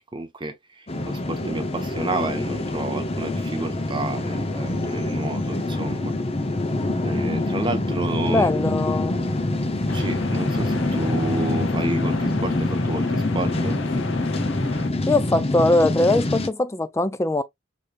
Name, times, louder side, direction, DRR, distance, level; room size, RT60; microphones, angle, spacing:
voice 1, 0.0-6.1 7.0-8.5 9.6-13.8, right 2 dB, 25° right, 0.7 m, -31 dB
sound 1, 0.9-16.5, left 2 dB, 30° left, 0.8 m, -25 dB
voice 2, 8.3-9.2 15.1-17.4, left 2 dB, 15° left, 0.3 m, -21 dB
sound 2, 9.9-14.9, left 4 dB, 75° left, 0.8 m, -33 dB
5.0 x 3.2 x 2.5 m
head